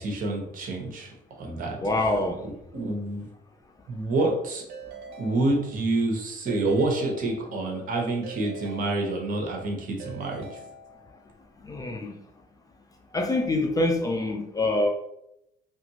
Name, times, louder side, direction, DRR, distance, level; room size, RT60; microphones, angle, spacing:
voice 1, 0.0-3.3 3.9-4.6 5.2-10.6, right 2 dB, 55° right, 1 dB, 0.9 m, -28 dB
voice 2, 1.8-2.4 11.6-12.2 13.1-14.9, left 2 dB, 20° left, 4 dB, 0.4 m, -25 dB
Keyboard (musical) / Ringtone, 4.7-6.0 6.5-7.8 8.2-9.6 10.0-11.3, right 4 dB, 85° right, 0.6 m, -44 dB
3.0 x 2.5 x 2.8 m, 0.80 s
cardioid pair, 110°, 17 cm